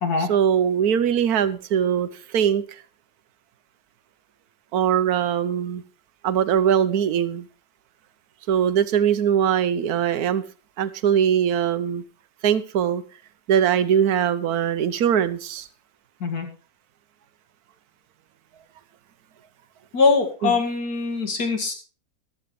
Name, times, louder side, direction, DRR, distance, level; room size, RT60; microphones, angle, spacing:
voice 1, 0.3-2.6 4.7-5.8 6.2-7.5 8.5-10.4 10.8-12.0 12.4-13.0 13.5-15.7 20.4-20.5, right 8 dB, 80° right, 13 dB, 1.3 m, -21 dB
voice 2, 19.9-21.7, left 4 dB, 85° left, 5 dB, 2.6 m, -22 dB
13.5 x 12.0 x 3.2 m, 0.35 s
omnidirectional pair, 1.6 m